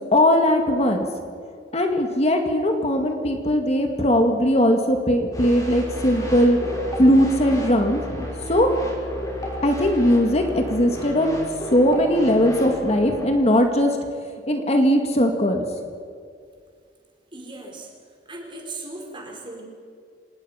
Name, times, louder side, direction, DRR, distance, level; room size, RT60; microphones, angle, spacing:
voice 1, 0.1-1.1 1.7-8.7 9.6-11.4 11.7-15.6, equal, 40° left, 4 dB, 2.0 m, -19 dB
sound 1, 5.3-13.3, left 1 dB, 20° left, 5.9 m, -33 dB
voice 2, 17.3-17.9 18.2-19.6, right 2 dB, 30° right, 1 dB, 4.6 m, -37 dB
26.5 x 19.0 x 5.7 m, 2.1 s
head